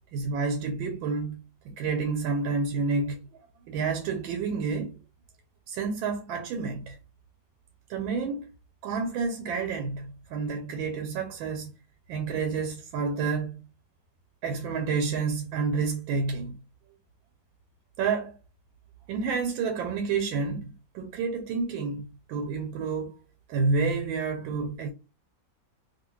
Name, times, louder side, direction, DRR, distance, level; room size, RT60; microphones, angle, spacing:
voice 1, 0.1-1.4 1.7-3.2 3.7-4.9 5.7-7.0 7.9-8.5 8.8-11.7 12.1-13.6 14.4-16.6 18.0-18.4 19.1-23.2 23.5-24.9, right 4 dB, 85° right, 1.3 m, -29 dB
2.7 x 2.7 x 3.0 m
omnidirectional pair, 2.1 m